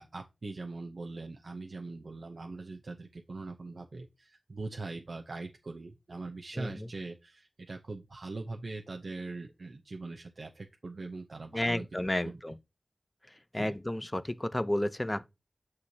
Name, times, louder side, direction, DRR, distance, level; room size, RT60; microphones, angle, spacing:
voice 1, 0.0-11.9 12.2-12.4 13.5-13.8, right 3 dB, 80° right, 0.8 m, -41 dB
voice 2, 11.5-12.6 13.5-15.3, left 1 dB, 25° left, 0.7 m, -31 dB
9.6 x 6.4 x 2.9 m
wide cardioid pair, 55°, 0 cm